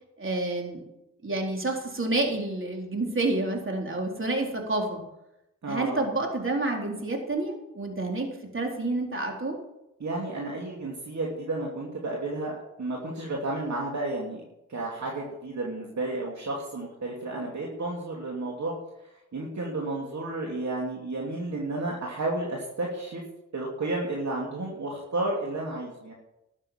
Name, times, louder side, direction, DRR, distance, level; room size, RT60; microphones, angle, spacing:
voice 1, 0.2-0.8 1.2-5.0 5.7-9.6, right 2 dB, 40° right, 1 dB, 3.9 m, -29 dB
voice 2, 5.6-6.0 10.0-14.4 14.7-18.7 19.3-23.2 23.5-26.1, right 2 dB, 60° right, -2 dB, 2.8 m, -32 dB
13.0 x 7.4 x 7.5 m, 0.88 s
supercardioid pair, 40°, 32 cm